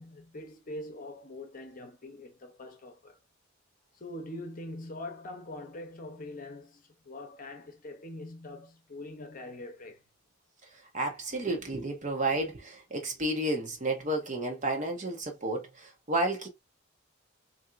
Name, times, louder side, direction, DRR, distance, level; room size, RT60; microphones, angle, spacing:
voice 1, 0.0-3.2 4.0-10.0, left 1 dB, 45° left, 0.8 m, -43 dB
voice 2, 10.9-16.5, right 2 dB, 40° right, 1.0 m, -31 dB
3.5 x 2.7 x 2.6 m
head